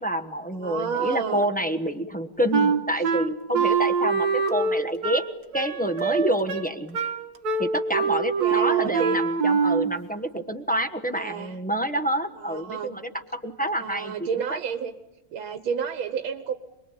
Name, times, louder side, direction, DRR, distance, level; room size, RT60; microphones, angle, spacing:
voice 1, 0.0-5.2 5.5-7.0 7.6-14.6, right 1 dB, 5° left, 4 dB, 0.6 m, -28 dB
voice 2, 0.5-1.5 8.4-9.2 11.1-11.6 12.4-12.9 13.8-14.9 15.3-16.5, right 6 dB, 75° right, 8 dB, 1.9 m, -30 dB
Wind instrument woodwind instrument, 2.5-10.0, right 5 dB, 50° right, 1.7 m, -24 dB
26.5 x 21.5 x 9.0 m, 1.0 s
omnidirectional pair, 2.3 m